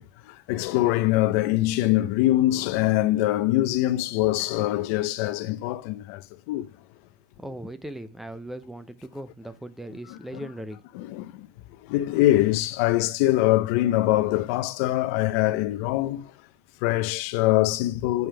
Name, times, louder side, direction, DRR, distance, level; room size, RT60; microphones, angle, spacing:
voice 1, 0.0-6.7 10.1-10.5 10.9-11.5 11.8-16.3 16.8-18.3, left 16 dB, 55° left, 0.8 m, -23 dB
voice 2, 7.4-10.8, right 1 dB, 5° right, 0.6 m, -38 dB
9.3 x 5.3 x 3.3 m
supercardioid pair, 160°, 9 cm